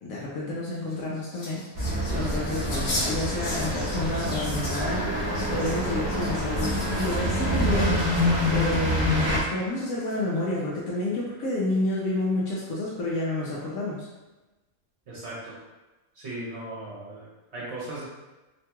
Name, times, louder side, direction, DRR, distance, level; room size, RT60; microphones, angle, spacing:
voice 1, 0.0-8.0 8.5-14.1, left 1 dB, 90° left, -5 dB, 1.0 m, -30 dB
sound 1, 0.8-9.2 9.8-10.4, left 1 dB, 65° left, 1.0 m, -38 dB
sound 2, 1.7-9.4, left 1 dB, 15° right, 0.5 m, -26 dB
voice 2, 15.1-15.6 16.2-18.1, right 1 dB, 60° right, -6 dB, 0.9 m, -37 dB
2.9 x 2.2 x 2.8 m, 1.1 s
omnidirectional pair, 1.4 m